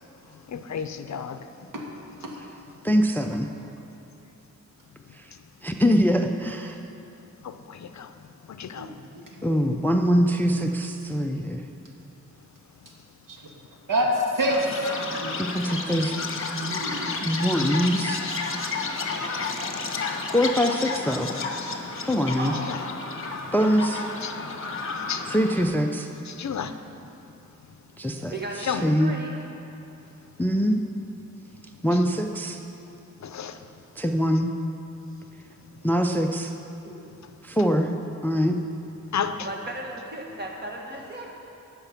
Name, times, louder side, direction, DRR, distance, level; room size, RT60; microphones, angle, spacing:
voice 1, 0.3-1.5 7.4-8.9 16.3-17.2 17.7-17.8 18.2-18.4 19.1-19.2 20.8-21.1 21.6-21.7 22.5-22.8 24.2-24.4 24.7-25.3 26.3-26.8 27.7-27.8 28.6-29.0 33.2-33.7 37.2-37.3 39.1-39.5, left 7 dB, 65° left, 9 dB, 0.5 m, -34 dB
voice 2, 2.8-3.5 5.1-5.3 5.6-6.8 9.4-11.6 15.4-16.2 17.2-18.3 20.3-21.3 22.0-22.5 23.5-24.0 25.3-26.1 28.0-29.1 30.4-30.8 31.8-32.6 34.0-34.5 35.8-36.5 37.4-37.9 38.2-38.6, equal, 5° left, 4 dB, 0.3 m, -23 dB
voice 3, 8.7-9.5 13.3-13.4 13.9-14.8 15.2-15.3 16.5-17.3 36.8-37.0, equal, 90° right, -1 dB, 1.7 m, -27 dB
Chirp tweet, 14.5-25.6, left 4 dB, 45° left, 0.9 m, -31 dB
voice 4, 22.4-22.8 28.3-29.3 39.4-41.3, right 2 dB, 35° right, -1 dB, 1.4 m, -35 dB
15.5 x 5.8 x 5.8 m, 2.8 s
wide cardioid pair, 165°, 31 cm